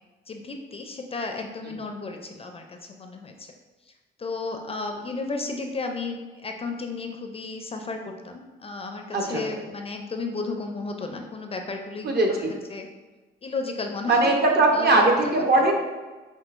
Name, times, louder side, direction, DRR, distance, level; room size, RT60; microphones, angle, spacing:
voice 1, 0.3-3.5 4.2-12.4 12.7-12.9 13.4-15.0, left 3 dB, 30° left, 4 dB, 0.4 m, -33 dB
voice 2, 12.0-12.5 14.1-15.7, right 2 dB, 55° right, 1 dB, 0.8 m, -20 dB
5.3 x 2.6 x 2.5 m, 1.3 s
cardioid pair, 90°, 20 cm